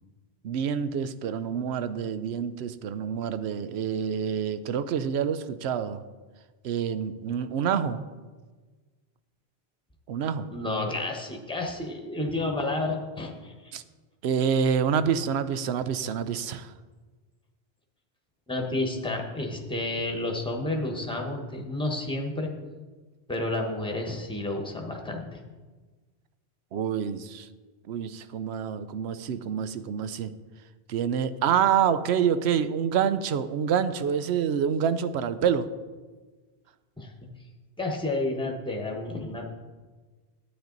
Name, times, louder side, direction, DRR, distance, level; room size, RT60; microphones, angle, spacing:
voice 1, 0.4-6.0 6.6-8.1 10.1-10.5 13.7-13.8 14.2-16.7 18.7-18.8 26.7-27.5 27.9-30.3 30.9-35.7, right 8 dB, 85° right, 12 dB, 0.8 m, -27 dB
voice 2, 10.5-13.7 18.5-22.5 23.3-25.4 37.0-37.3 37.8-39.5, left 2 dB, 5° left, 1 dB, 1.1 m, -31 dB
10.0 x 9.0 x 3.9 m, 1.3 s
omnidirectional pair, 1.1 m